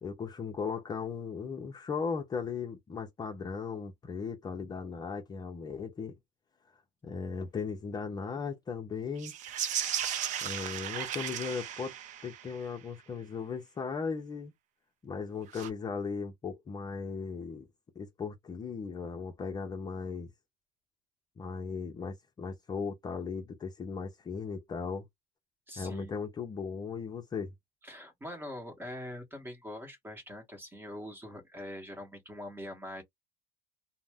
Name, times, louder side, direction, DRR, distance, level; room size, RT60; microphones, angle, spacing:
voice 1, 0.0-6.2 7.0-9.3 10.4-12.0 12.2-14.5 15.0-17.7 18.0-20.3 21.4-25.1 25.8-27.5, left 5 dB, 25° left, 0.6 m, -37 dB
sound 1, 9.2-12.7 15.5-15.7, right 9 dB, 50° right, 0.5 m, -35 dB
voice 2, 25.7-26.1 27.8-33.0, left 1 dB, 15° right, 1.0 m, -43 dB
2.6 x 2.0 x 3.4 m
cardioid pair, 130°, 16 cm